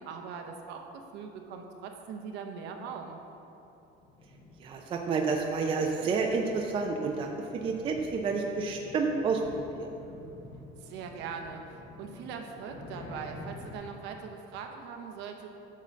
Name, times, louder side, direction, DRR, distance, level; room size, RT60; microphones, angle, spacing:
voice 1, 0.0-3.2 10.8-15.5, right 6 dB, 65° right, 4 dB, 0.8 m, -41 dB
sound 1, 3.9-13.8, left 2 dB, 25° left, 0.8 m, -49 dB
voice 2, 4.6-9.4, right 4 dB, 25° right, 2 dB, 0.5 m, -29 dB
8.6 x 3.8 x 6.6 m, 3.0 s
cardioid pair, 175°, 20 cm